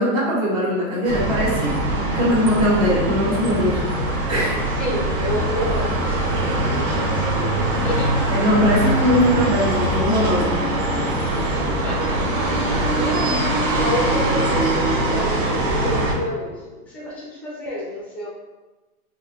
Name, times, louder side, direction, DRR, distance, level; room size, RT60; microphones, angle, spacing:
voice 1, 0.0-1.7 2.1-4.6 8.3-10.5, equal, 40° right, -5 dB, 1.3 m, -20 dB
sound 1, 1.0-16.1, right 1 dB, 60° right, 1.2 m, -22 dB
voice 2, 4.7-8.2 10.4-10.7 11.3-18.3, left 1 dB, 5° left, -6 dB, 0.5 m, -29 dB
4.6 x 2.9 x 2.3 m, 1.2 s
hypercardioid pair, 145°, 44 cm